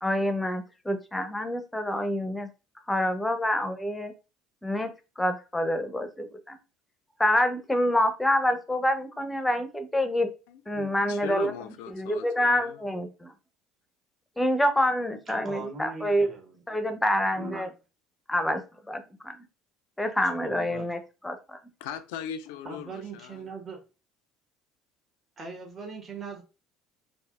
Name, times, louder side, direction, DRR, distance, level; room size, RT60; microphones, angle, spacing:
voice 1, 0.0-2.5 2.9-4.1 4.6-4.9 5.2-6.6 7.2-10.3 10.7-11.5 11.9-13.3 14.4-16.3 16.7-17.7 18.3-18.6 18.9-19.4 20.0-21.6, left 1 dB, 10° left, 0.6 m, -27 dB
voice 2, 10.5-12.8 21.8-23.5, left 9 dB, 65° left, 0.3 m, -39 dB
voice 3, 15.4-16.6 17.3-17.7 20.4-20.9 22.6-23.8 25.4-26.4, right 4 dB, 35° right, 1.3 m, -40 dB
3.3 x 2.6 x 2.3 m
figure-of-eight pair, 60°, 0 cm